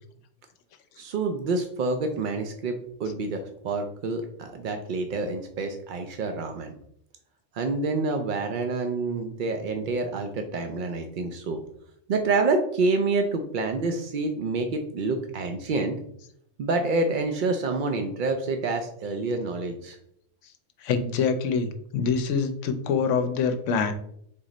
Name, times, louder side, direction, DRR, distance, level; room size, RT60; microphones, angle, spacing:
voice 1, 1.0-6.7 7.5-11.6 12.1-16.0 16.6-20.0, right 3 dB, 75° right, 5 dB, 0.4 m, -27 dB
voice 2, 20.8-23.9, left 5 dB, 70° left, 8 dB, 0.9 m, -25 dB
4.1 x 3.1 x 3.8 m, 0.70 s
omnidirectional pair, 1.4 m